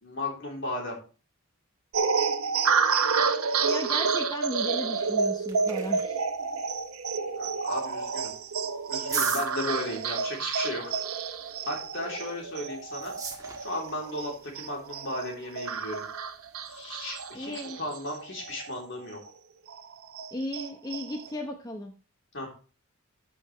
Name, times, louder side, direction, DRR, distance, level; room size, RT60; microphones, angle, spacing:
voice 1, 0.0-1.0 7.4-8.3 8.9-10.9 11.7-13.1 13.6-16.1 16.7-17.5 17.8-19.2 22.3-22.5, left 1 dB, 60° left, -1 dB, 3.6 m, -35 dB
sound 1, 1.9-18.8 19.2-19.3 19.7-21.3, right 5 dB, 90° right, 1.0 m, -29 dB
voice 2, 3.0-6.2 17.3-17.8 20.3-21.9, left 1 dB, 20° left, 3 dB, 0.8 m, -36 dB
sound 2, 5.0-17.6, right 5 dB, 15° right, 1.5 m, -43 dB
14.0 x 5.7 x 3.2 m, 0.36 s
head